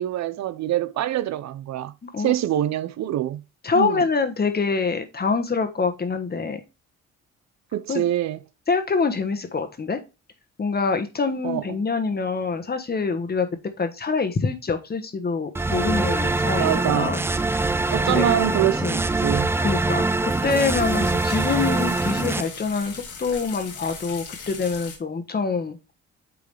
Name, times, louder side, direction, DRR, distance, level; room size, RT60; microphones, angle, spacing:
voice 1, 0.0-3.4 3.7-4.0 7.7-8.4 11.4-11.6 16.6-17.1 17.9-19.5, right 12 dB, 65° right, 0.5 m, -25 dB
voice 2, 2.0-2.3 3.6-6.6 7.9-8.0 8.7-10.0 10.6-13.5 13.8-17.2 17.5-17.8 18.0-18.3 18.8-19.0 19.6-25.8, left 4 dB, 30° left, 1.3 m, -25 dB
sound 1, 15.5-22.4, right 3 dB, 10° right, 0.3 m, -23 dB
sound 2, 19.2-25.0, left 5 dB, 90° left, 1.9 m, -40 dB
8.6 x 3.8 x 3.2 m
cardioid pair, 90°, 30 cm